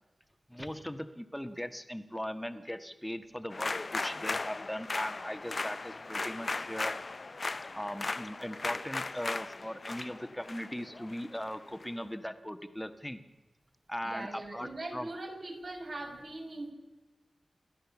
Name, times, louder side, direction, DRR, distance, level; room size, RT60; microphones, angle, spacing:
voice 1, 0.5-6.9 7.7-13.2 13.9-15.1, equal, 5° left, 9 dB, 1.6 m, -39 dB
sound 1, 3.5-11.9, left 3 dB, 50° left, 0.5 m, -37 dB
voice 2, 14.0-16.7, right 2 dB, 60° right, 2 dB, 6.1 m, -41 dB
28.5 x 13.0 x 7.2 m, 1.2 s
wide cardioid pair, 80°, 0 cm